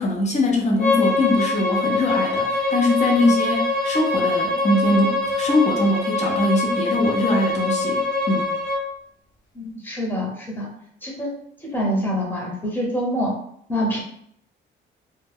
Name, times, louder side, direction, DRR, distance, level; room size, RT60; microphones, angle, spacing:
voice 1, 0.0-8.5, left 1 dB, 35° left, 0 dB, 0.7 m, -22 dB
Bowed string instrument, 0.8-8.8, left 3 dB, 80° left, 0.8 m, -23 dB
voice 2, 9.5-10.7 11.0-11.3 11.6-13.4 13.7-14.0, equal, 10° left, -3 dB, 1.0 m, -25 dB
2.2 x 2.1 x 3.4 m, 0.68 s
cardioid pair, 90°, 20 cm